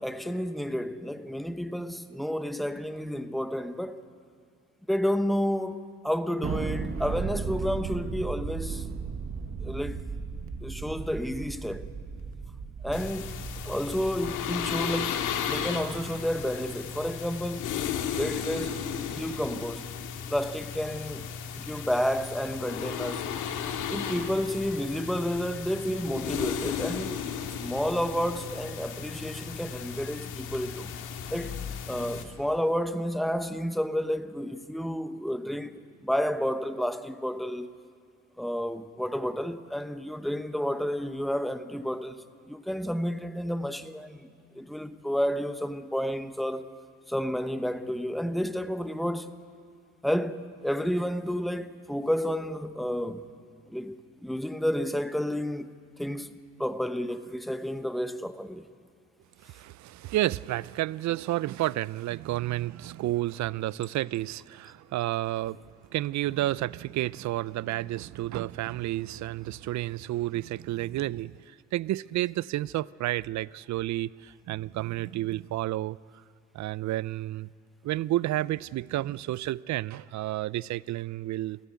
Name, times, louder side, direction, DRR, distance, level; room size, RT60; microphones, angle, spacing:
voice 1, 0.0-4.0 4.9-8.9 9.6-10.0 10.6-11.9 12.8-13.4 13.6-17.8 18.1-19.9 20.3-23.2 23.9-27.2 27.6-30.9 31.3-31.6 31.9-37.7 38.4-44.3 44.5-46.7 47.1-49.3 50.0-53.3 53.7-58.7, equal, ahead, 1.0 m, -31 dB
Thunder, 6.4-17.1, right 5 dB, 45° right, 1.5 m, -36 dB
sound 1, 12.9-32.2, left 8 dB, 90° left, 1.9 m, -35 dB
voice 2, 59.4-65.6 65.9-76.0 76.5-77.5 77.8-81.6, right 15 dB, 65° right, 0.5 m, -31 dB
28.5 x 14.0 x 9.4 m
cardioid pair, 90°, 30 cm